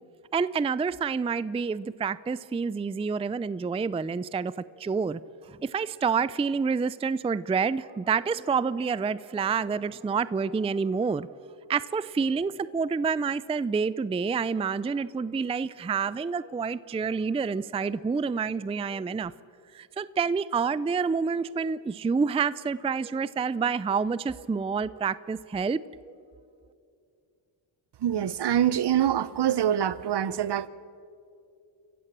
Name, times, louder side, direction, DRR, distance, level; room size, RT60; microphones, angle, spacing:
voice 1, 0.3-4.5 4.8-5.2 5.6-11.3 11.7-19.3 19.7-25.8 26.1-26.2, right 5 dB, 15° right, 0.4 m, -28 dB
voice 2, 28.0-30.7, right 10 dB, 55° right, 0.9 m, -25 dB
26.0 x 15.0 x 7.5 m
cardioid pair, 70°, 49 cm